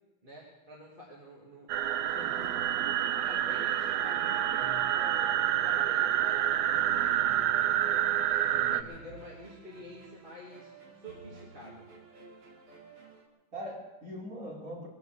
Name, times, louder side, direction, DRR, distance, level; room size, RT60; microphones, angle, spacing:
voice 1, 0.2-7.4 8.3-11.9, equal, 25° right, -5 dB, 2.9 m, -48 dB
sound 1, 1.7-8.8, right 11 dB, 65° right, 1.0 m, -28 dB
sound 2, 2.2-13.3, right 4 dB, 90° right, 3.3 m, -53 dB
voice 2, 8.5-8.9 13.5-14.9, equal, 40° right, -4 dB, 5.5 m, -42 dB
22.0 x 8.2 x 7.9 m, 1.1 s
omnidirectional pair, 2.3 m